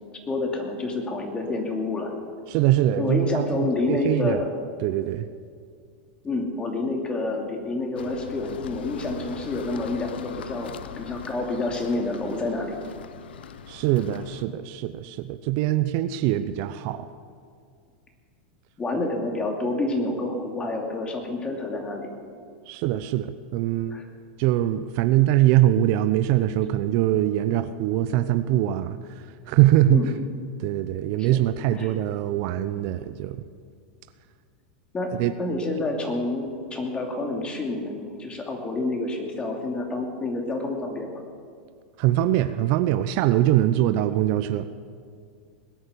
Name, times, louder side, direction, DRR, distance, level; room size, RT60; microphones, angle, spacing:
voice 1, 0.3-2.1 3.0-4.5 6.2-10.7 11.0-12.8 18.8-22.1 23.9-24.0 29.9-30.1 31.2-31.4 31.7-31.9 34.9-35.1 35.4-41.1, left 2 dB, 20° left, 2 dB, 2.7 m, -28 dB
voice 2, 2.5-4.4 4.8-5.3 13.7-17.1 22.7-24.0 24.4-29.0 29.5-30.0 30.6-33.4 35.2-35.3 42.0-44.7, right 13 dB, 55° right, 12 dB, 0.6 m, -23 dB
sound 1, 7.9-14.5, left 8 dB, 85° left, 0.7 m, -40 dB
20.5 x 8.9 x 6.9 m, 2.2 s
hypercardioid pair, 125°, 5 cm